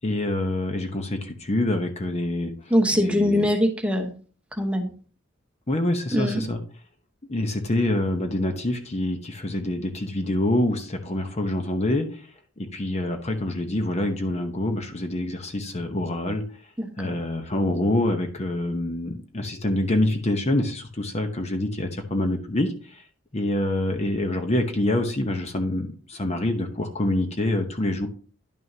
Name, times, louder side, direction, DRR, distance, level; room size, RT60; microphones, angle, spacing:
voice 1, 0.0-2.5 2.9-3.5 5.7-6.6 7.3-12.3 12.6-16.4 17.0-23.0 23.3-28.1, left 1 dB, 35° left, 6 dB, 0.9 m, -26 dB
voice 2, 2.7-4.1 4.6-4.9 6.1-6.4 16.8-16.9, equal, 5° right, 3 dB, 1.1 m, -22 dB
10.5 x 6.3 x 2.8 m, 0.40 s
head